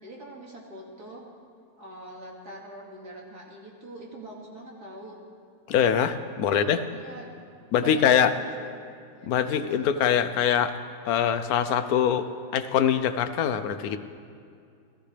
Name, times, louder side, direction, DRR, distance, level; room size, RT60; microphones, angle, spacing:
voice 1, 0.0-1.3 1.8-5.2 6.4-6.7 6.9-7.3 7.8-8.7 9.1-10.2, right 1 dB, 70° right, -2 dB, 2.9 m, -43 dB
voice 2, 5.7-6.8 7.7-8.3 9.3-10.7 11.1-12.3 12.5-14.0, left 8 dB, 70° left, 10 dB, 1.2 m, -23 dB
29.0 x 14.0 x 3.4 m, 2.4 s
omnidirectional pair, 1.7 m